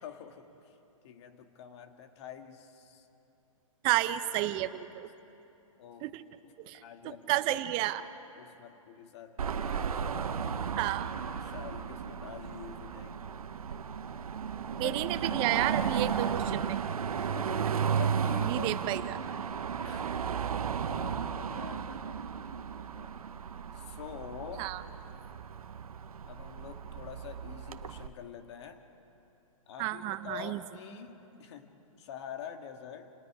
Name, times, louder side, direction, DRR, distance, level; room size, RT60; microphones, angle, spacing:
voice 1, 0.0-0.8 1.0-3.1 5.8-6.2 6.4-7.5 8.4-10.6 11.4-13.3 14.7-15.1 17.2-18.7 19.8-20.2 20.8-23.1 23.7-24.8 26.3-28.8 29.7-33.1, left 8 dB, 50° left, 6 dB, 1.8 m, -47 dB
voice 2, 3.8-5.1 6.0-6.2 6.7-8.0 10.8-11.1 14.8-16.8 18.4-19.1 24.6-24.8 29.8-30.6, right 15 dB, 30° right, 11 dB, 0.8 m, -31 dB
Car passing by / Traffic noise roadway noise / Engine, 9.4-28.1, right 7 dB, 90° right, 1.0 m, -34 dB
29.0 x 19.0 x 4.8 m, 2.9 s
hypercardioid pair, 140°, 18 cm